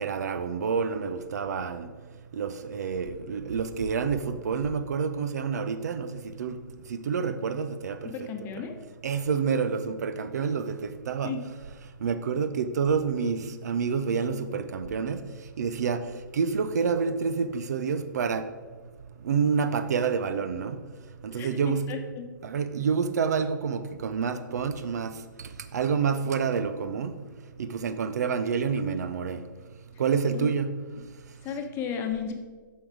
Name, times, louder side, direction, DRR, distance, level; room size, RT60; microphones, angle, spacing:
voice 1, 0.0-1.9 2.3-6.6 6.9-8.1 9.0-11.3 12.0-15.2 15.6-16.0 16.3-18.5 19.2-20.8 21.2-21.9 22.4-27.1 27.6-29.4 30.0-30.8, right 6 dB, 55° right, 0.6 m, -28 dB
voice 2, 8.0-8.8 11.2-11.4 21.3-22.2 30.3-30.5 31.4-32.3, left 7 dB, 20° left, 1.0 m, -34 dB
8.9 x 6.3 x 4.8 m
figure-of-eight pair, 120°, 11 cm